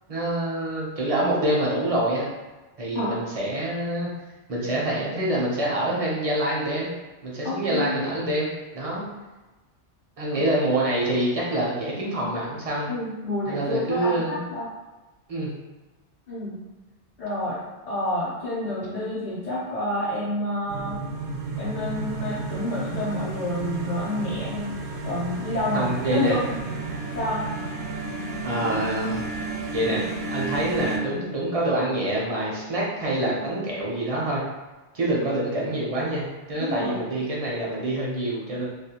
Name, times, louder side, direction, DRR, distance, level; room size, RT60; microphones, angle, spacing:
voice 1, 0.1-2.3 2.8-4.1 4.5-6.9 7.2-8.5 8.7-9.0 10.2-12.9 13.5-14.4 15.3-15.5 25.7-26.4 28.4-29.2 29.7-30.0 30.3-34.4 34.9-38.6, right 1 dB, 45° right, -4 dB, 0.5 m, -26 dB
voice 2, 7.4-8.1 12.9-14.7 16.3-16.6 17.2-17.6 17.9-21.1 21.6-24.8 25.0-26.8 27.1-27.5 35.2-35.3 36.6-37.0, left 1 dB, 45° left, -11 dB, 0.7 m, -29 dB
sound 1, 20.7-31.0, right 3 dB, 80° right, 0.9 m, -32 dB
2.4 x 2.3 x 2.8 m, 1.1 s
omnidirectional pair, 1.2 m